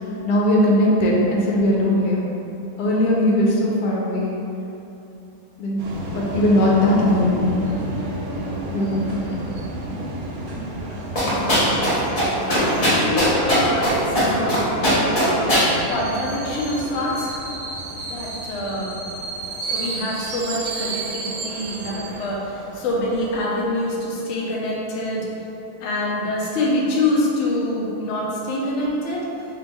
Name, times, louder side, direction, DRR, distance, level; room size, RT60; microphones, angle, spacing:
voice 1, 0.2-2.3 2.8-4.4 5.6-5.8 6.1-7.5 8.7-9.3, left 1 dB, 90° left, -3 dB, 1.2 m, -19 dB
sound 1, 5.8-23.4, right 2 dB, 75° right, 1.0 m, -32 dB
voice 2, 11.2-11.7 12.4-14.6 15.1-15.5 15.9-17.3 18.1-18.9 19.7-25.3 25.8-29.2, left 1 dB, 60° left, -4 dB, 0.8 m, -25 dB
sound 2, 11.2-11.9 12.2-12.3 12.5-13.9 14.1-14.6 14.8-15.6, equal, 30° left, 0.7 m, -19 dB
3.6 x 2.9 x 3.0 m, 2.8 s
omnidirectional pair, 1.6 m